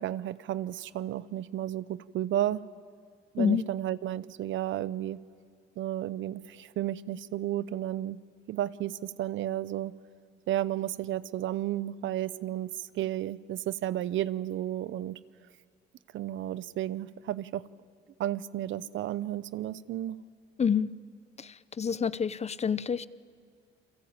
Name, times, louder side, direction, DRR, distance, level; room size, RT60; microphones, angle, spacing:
voice 1, 0.0-2.6 3.3-5.2 5.8-8.2 8.5-9.9 10.5-12.7 12.9-15.2 16.1-17.7 18.2-20.2, right 12 dB, 75° right, 18 dB, 0.8 m, -32 dB
voice 2, 3.4-3.7 20.6-20.9 21.4-23.1, left 7 dB, 35° left, 19 dB, 0.7 m, -28 dB
29.0 x 22.5 x 8.8 m, 2.3 s
cardioid pair, 90°, 20 cm